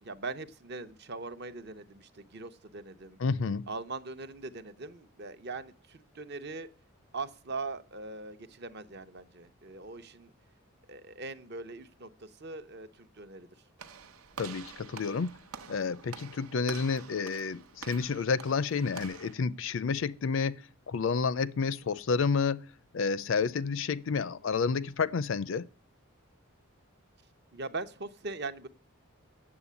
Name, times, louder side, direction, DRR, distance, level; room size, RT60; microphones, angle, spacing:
voice 1, 0.0-3.2 3.7-6.7 7.1-10.3 10.9-13.5 27.5-28.7, right 3 dB, 50° right, 0.8 m, -41 dB
voice 2, 3.2-3.7 14.4-15.3 15.7-25.7, left 5 dB, 60° left, 0.4 m, -30 dB
Walk footsteps / Slam, 13.8-19.3, right 6 dB, 75° right, 0.9 m, -47 dB
8.8 x 7.4 x 8.2 m
head